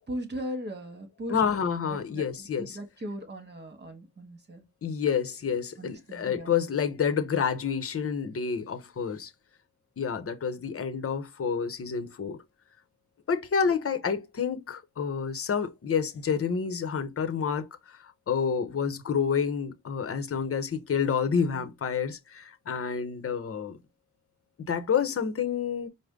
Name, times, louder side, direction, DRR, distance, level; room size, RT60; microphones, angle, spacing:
voice 1, 0.1-1.4 1.9-2.2 2.6-4.6 5.8-6.5, equal, 35° right, 1.5 m, -38 dB
voice 2, 1.3-2.8 4.8-9.3 10.0-12.4 13.3-23.8 24.7-25.9, left 6 dB, 45° left, 0.9 m, -29 dB
4.9 x 2.1 x 3.6 m
cardioid pair, 95°, 31 cm